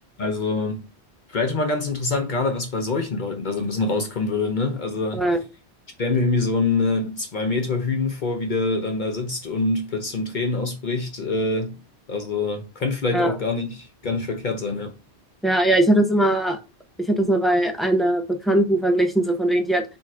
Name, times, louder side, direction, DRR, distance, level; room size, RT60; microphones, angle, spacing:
voice 1, 0.2-0.9 1.3-5.3 6.0-11.8 12.1-15.0, left 3 dB, 50° left, 0.7 m, -25 dB
voice 2, 15.4-16.6 17.1-19.8, right 1 dB, ahead, 0.4 m, -20 dB
3.5 x 2.7 x 4.6 m
omnidirectional pair, 1.1 m